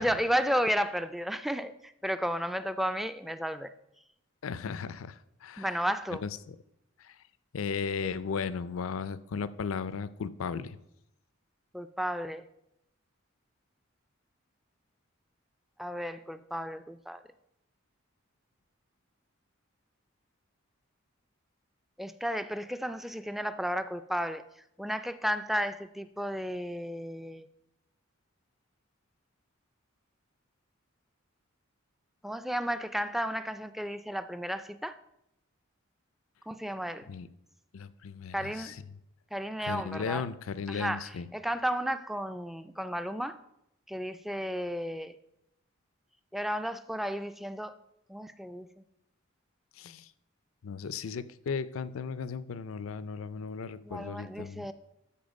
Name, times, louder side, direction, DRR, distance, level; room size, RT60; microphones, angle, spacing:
voice 1, 0.0-3.7 5.6-6.2 11.7-12.5 15.8-17.2 22.0-24.4 24.8-27.5 32.2-35.0 36.5-37.1 38.3-38.7 39.3-40.3 40.7-43.4 43.9-45.2 46.3-47.7 48.1-48.8 53.8-54.7, equal, ahead, 11 dB, 0.3 m, -33 dB
voice 2, 4.4-5.8 6.2-6.6 7.0-7.2 7.5-10.8 37.1-37.3 37.7-38.8 39.6-41.3 49.8-50.1 50.6-54.7, left 5 dB, 80° left, 15 dB, 0.4 m, -36 dB
13.0 x 4.3 x 5.2 m, 0.82 s
head